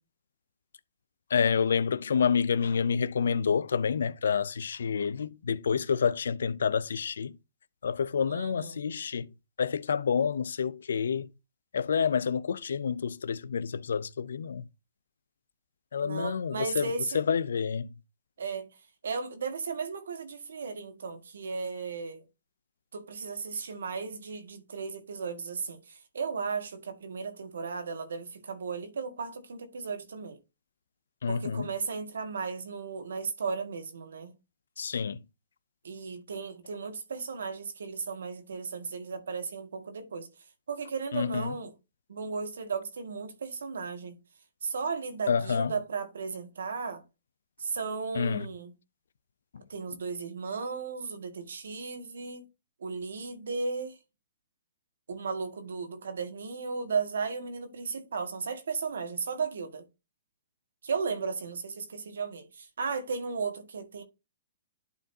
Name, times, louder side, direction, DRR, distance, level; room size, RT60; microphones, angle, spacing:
voice 1, 1.3-7.3 7.8-9.3 9.6-11.3 11.7-14.6 15.9-17.9 31.2-31.7 34.8-35.2 41.1-41.5 45.3-45.7 48.2-48.5, left 6 dB, 80° left, 0.5 m, -28 dB
voice 2, 8.3-8.8 16.0-17.2 18.4-18.7 19.0-22.2 22.9-30.4 31.3-34.3 35.8-40.3 40.7-41.7 42.1-44.2 44.6-47.0 47.6-48.7 49.7-52.4 52.8-54.0 55.1-59.8 60.8-64.0, right 5 dB, 80° right, 1.9 m, -35 dB
11.5 x 4.0 x 2.7 m
hypercardioid pair, 135°, 0 cm